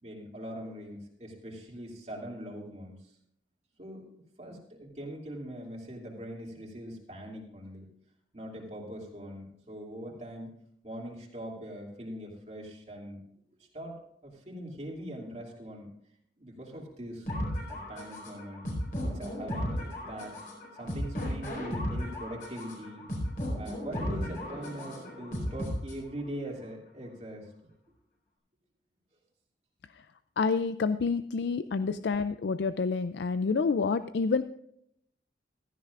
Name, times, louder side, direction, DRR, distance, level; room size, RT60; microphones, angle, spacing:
voice 1, 0.0-3.0 3.8-4.1 4.4-7.9 8.3-10.5 10.8-13.2 13.7-15.9 16.4-17.4 17.7-18.6 19.0-20.3 20.8-23.0 23.6-27.5, equal, 40° right, -2 dB, 2.6 m, -42 dB
sound 1, 17.3-26.3, equal, 50° left, 4.6 m, -35 dB
voice 2, 30.4-34.4, left 4 dB, 70° left, 12 dB, 0.4 m, -28 dB
16.0 x 13.5 x 2.5 m, 0.73 s
head